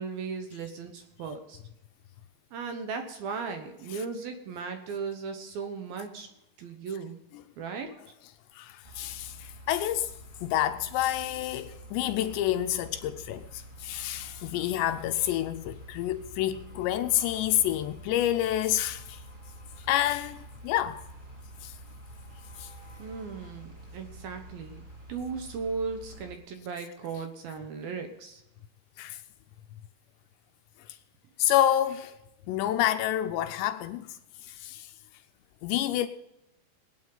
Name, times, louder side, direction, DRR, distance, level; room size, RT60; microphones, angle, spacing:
voice 1, 0.0-1.6 2.5-6.3 6.6-7.2 7.6-7.9 23.0-28.4, right 5 dB, 70° right, 2.3 m, -37 dB
voice 2, 8.5-10.1 10.4-19.2 19.8-21.0 21.6-21.8 22.6-22.7 29.0-29.2 30.9-31.0 31.4-32.1 32.5-34.1 34.4-34.9 35.6-36.1, left 12 dB, 80° left, 2.6 m, -28 dB
sound 1, 8.8-26.4, right 1 dB, 90° right, 0.4 m, -48 dB
21.5 x 9.4 x 3.9 m
omnidirectional pair, 5.5 m